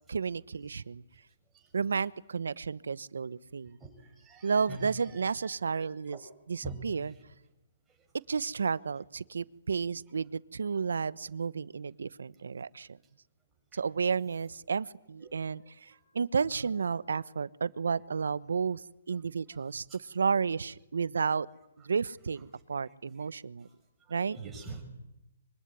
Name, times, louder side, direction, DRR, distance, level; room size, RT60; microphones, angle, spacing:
voice 1, 0.1-1.0 1.7-3.8 4.4-7.1 8.3-13.0 13.7-21.5 21.8-23.7 24.1-24.4, right 5 dB, 80° right, 18 dB, 1.1 m, -32 dB
voice 2, 3.8-4.9 6.6-6.8 15.3-15.4 24.4-24.8, right 3 dB, 10° right, 1 dB, 5.7 m, -43 dB
24.5 x 24.0 x 9.9 m, 0.90 s
hypercardioid pair, 165°, 0 cm